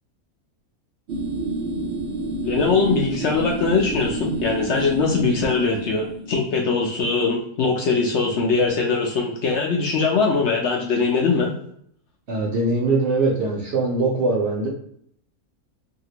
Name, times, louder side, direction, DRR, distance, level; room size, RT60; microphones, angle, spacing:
sound 1, 1.1-6.5, right 2 dB, 80° right, 0.5 m, -29 dB
voice 1, 2.4-11.5, left 4 dB, 65° left, 0 dB, 0.7 m, -21 dB
voice 2, 12.3-14.7, right 3 dB, 60° right, -1 dB, 0.8 m, -22 dB
2.7 x 2.4 x 2.8 m, 0.67 s
omnidirectional pair, 1.6 m